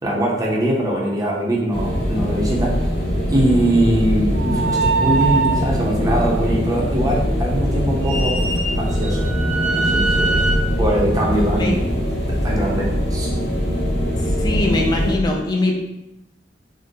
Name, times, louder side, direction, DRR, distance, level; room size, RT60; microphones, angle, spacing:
voice 1, 0.0-2.8 3.3-8.3 8.8-9.3 9.8-10.5 10.8-11.9 12.2-13.3, right 1 dB, 20° right, -3 dB, 0.6 m, -22 dB
sound 1, 1.7-15.2, equal, 75° left, 0.8 m, -22 dB
sound 2, 4.3-5.7 8.0-10.5, right 4 dB, 80° right, 0.8 m, -22 dB
voice 2, 14.3-15.7, left 2 dB, 25° left, 1 dB, 0.4 m, -21 dB
3.6 x 2.1 x 2.7 m, 0.91 s
head